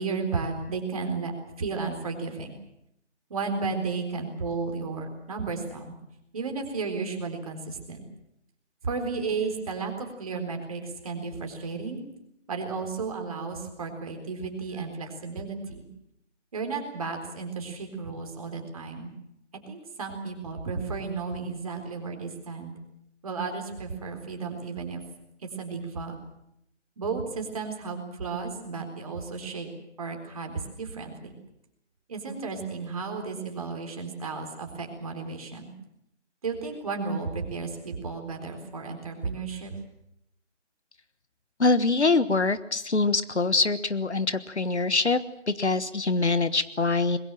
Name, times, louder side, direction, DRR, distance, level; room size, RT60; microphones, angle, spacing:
voice 1, 0.0-1.3 1.6-2.5 3.3-6.0 6.3-8.0 8.8-12.0 12.5-15.9 16.5-19.1 19.5-22.7 23.2-25.0 25.6-26.2 27.0-29.7 30.0-31.3 32.1-35.7 36.4-39.8, right 4 dB, 30° right, 4 dB, 4.0 m, -33 dB
voice 2, 41.6-45.2 45.5-47.2, left 3 dB, 65° left, 14 dB, 1.4 m, -24 dB
22.5 x 21.5 x 7.6 m, 0.77 s
figure-of-eight pair, 160°, 36 cm